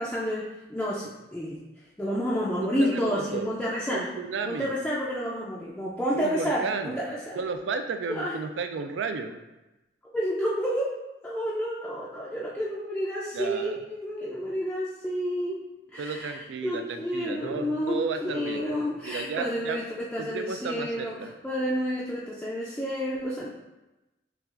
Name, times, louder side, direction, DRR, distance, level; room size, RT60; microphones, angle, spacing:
voice 1, 0.0-1.6 2.0-4.1 4.5-7.4 8.1-8.3 10.1-10.9 11.2-15.6 15.9-23.5, equal, 5° left, -6 dB, 0.3 m, -30 dB
voice 2, 2.6-3.5 3.9-4.7 6.1-7.0 7.4-9.3 13.3-13.8 16.0-18.6 19.0-19.8 20.2-21.3, right 5 dB, 90° right, 7 dB, 0.4 m, -33 dB
5.6 x 2.3 x 2.4 m, 1.0 s
head